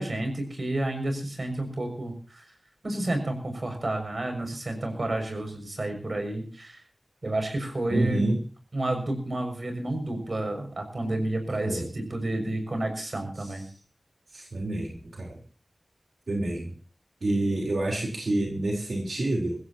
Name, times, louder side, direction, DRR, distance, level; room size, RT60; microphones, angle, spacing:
voice 1, 0.0-2.4 2.8-6.8 7.2-8.3 8.7-13.6, right 1 dB, 55° right, 5 dB, 6.4 m, -30 dB
voice 2, 7.9-8.4 11.6-11.9 14.3-14.9 15.2-15.3 16.3-16.7 17.2-19.6, right 1 dB, 90° right, -1 dB, 4.0 m, -27 dB
23.5 x 16.0 x 2.9 m, 0.39 s
wide cardioid pair, 75°, 0 cm